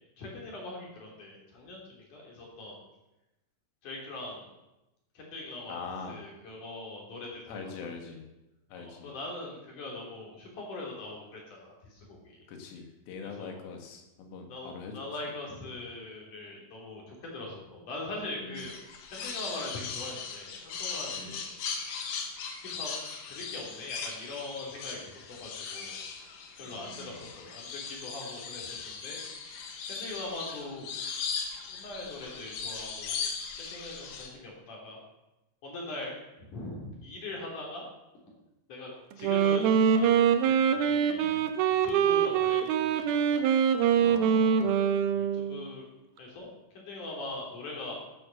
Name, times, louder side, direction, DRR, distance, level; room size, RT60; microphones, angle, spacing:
voice 1, 0.2-2.8 3.8-4.5 5.1-5.8 6.1-7.9 8.7-12.4 13.2-13.6 14.5-18.7 19.1-22.0 22.7-22.9 23.3-26.3 26.6-29.2 29.8-30.9 31.7-33.1 33.6-35.0 35.6-36.1 36.5-37.8 38.7-38.9 39.2-41.3 41.8-43.5 44.5-44.7 45.1-45.8 46.2-48.0, left 2 dB, 45° left, -1 dB, 4.3 m, -41 dB
voice 2, 5.7-6.2 7.5-8.3 8.7-9.1 12.5-15.3 18.4-18.7 21.1-21.4 26.6-27.3 41.2-41.5 44.0-44.7, left 4 dB, 85° left, 4 dB, 4.3 m, -43 dB
sound 1, 18.6-34.3, left 5 dB, 65° left, 2.8 m, -38 dB
Wind instrument woodwind instrument, 39.1-45.6, right 8 dB, 80° right, 2.2 m, -24 dB
12.0 x 9.6 x 7.1 m, 0.97 s
omnidirectional pair, 5.6 m